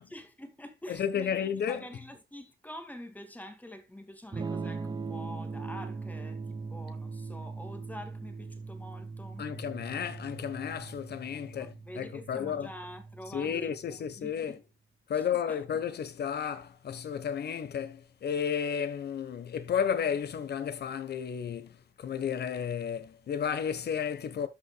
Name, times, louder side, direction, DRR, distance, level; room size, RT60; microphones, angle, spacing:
voice 1, 0.0-9.5 11.3-14.6 15.1-15.8, left 1 dB, 10° left, 2.0 m, -47 dB
voice 2, 0.9-1.8 9.4-12.7 13.3-14.6 15.1-24.5, left 8 dB, 55° left, 1.3 m, -33 dB
Electric guitar / Strum, 4.3-14.1, right 4 dB, 20° right, 1.0 m, -40 dB
13.0 x 5.7 x 2.4 m
cardioid pair, 90°, 20 cm